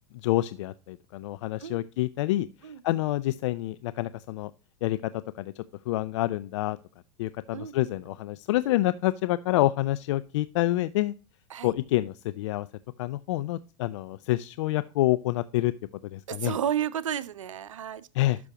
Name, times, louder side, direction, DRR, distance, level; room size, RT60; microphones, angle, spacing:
voice 1, 0.2-4.5 4.8-6.8 7.2-11.1 11.6-12.7 13.0-15.7 16.0-16.5 18.1-18.4, left 16 dB, 65° left, 0.5 m, -28 dB
voice 2, 7.5-7.9 11.5-11.7 16.3-18.1, right 9 dB, 90° right, 0.7 m, -32 dB
12.0 x 6.2 x 2.9 m
hypercardioid pair, 110°, 16 cm